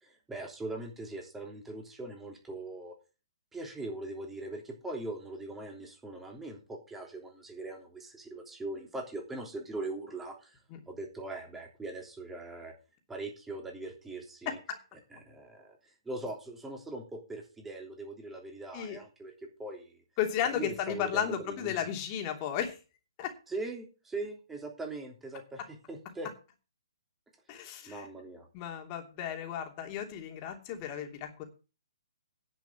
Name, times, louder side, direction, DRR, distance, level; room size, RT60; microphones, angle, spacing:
voice 1, 0.0-2.9 3.5-10.6 10.9-12.7 13.1-14.6 15.1-15.8 16.0-19.3 19.6-20.0 20.4-21.7 23.5-25.6 25.9-26.3 27.9-28.5, right 2 dB, 10° right, 1 dB, 3.1 m, -41 dB
voice 2, 14.4-14.8 18.7-19.0 20.2-22.8 23.2-23.3 27.5-28.1 28.5-31.4, left 9 dB, 30° left, 3 dB, 3.0 m, -34 dB
10.5 x 6.2 x 7.5 m, 0.33 s
hypercardioid pair, 140°, 3 cm